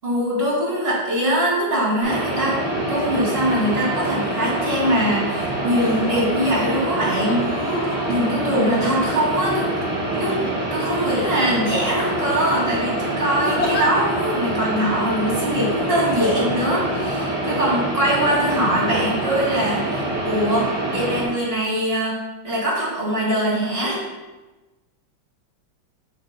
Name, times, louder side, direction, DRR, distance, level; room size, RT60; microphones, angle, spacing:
voice 1, 0.0-2.6 2.9-7.4 8.1-9.7 10.1-10.4 10.7-22.2 22.4-24.0, equal, 30° right, -6 dB, 2.8 m, -22 dB
sound 1, 2.0-21.3, right 1 dB, 70° right, 3.5 m, -25 dB
sound 2, 3.6-3.8 4.3-5.0 5.8-6.3 7.3-9.3 10.1-10.9 11.3-11.5 11.9-12.5 13.4-13.8 14.6-14.7, left 2 dB, 65° left, 2.2 m, -31 dB
9.6 x 7.6 x 2.3 m, 1.2 s
omnidirectional pair, 2.1 m